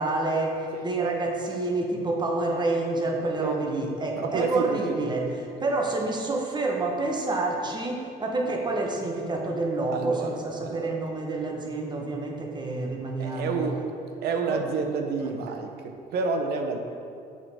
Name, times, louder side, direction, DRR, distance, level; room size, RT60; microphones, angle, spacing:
voice 1, 0.0-5.3 5.6-13.6 14.5-14.6 15.2-15.3, right 2 dB, 25° right, 1 dB, 1.0 m, -28 dB
voice 2, 4.2-5.0 9.9-11.0 13.2-13.9 14.2-16.8, right 4 dB, 70° right, 4 dB, 0.7 m, -29 dB
6.7 x 6.5 x 3.5 m, 2.6 s
cardioid pair, 110°, 17 cm